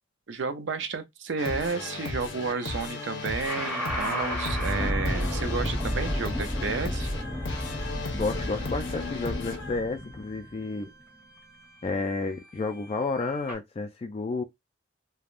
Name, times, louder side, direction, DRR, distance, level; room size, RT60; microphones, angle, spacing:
voice 1, 0.3-7.1, right 4 dB, 75° right, 0.5 m, -32 dB
sound 1, 1.4-9.8, left 3 dB, 75° left, 0.8 m, -35 dB
sound 2, 2.6-13.5, equal, 10° right, 0.8 m, -33 dB
voice 2, 8.1-10.9 11.8-14.4, left 3 dB, 35° left, 0.3 m, -31 dB
3.3 x 2.2 x 2.4 m
head